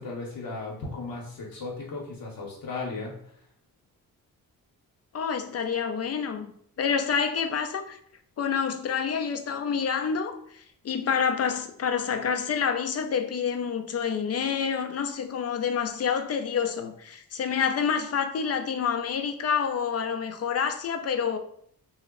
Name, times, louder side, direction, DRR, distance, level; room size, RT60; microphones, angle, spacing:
voice 1, 0.0-3.3, left 3 dB, 70° left, 0.8 m, -36 dB
voice 2, 5.1-6.5 6.8-8.0 8.4-21.4, left 6 dB, 45° left, 0.4 m, -28 dB
2.1 x 2.0 x 3.6 m
cardioid pair, 65°, 36 cm